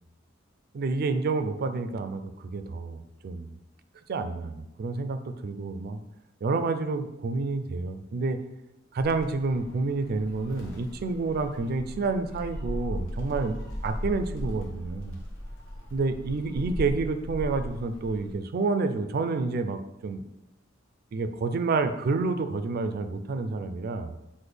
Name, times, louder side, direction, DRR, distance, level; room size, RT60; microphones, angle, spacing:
voice 1, 0.7-3.5 4.1-6.0 6.4-8.4 8.9-13.6 13.8-15.1 15.9-20.2 21.1-24.1, right 3 dB, 50° right, 9 dB, 0.3 m, -29 dB
Gull seagull, 9.0-18.3, equal, 85° left, 0.9 m, -37 dB
6.0 x 2.1 x 3.3 m, 0.91 s
head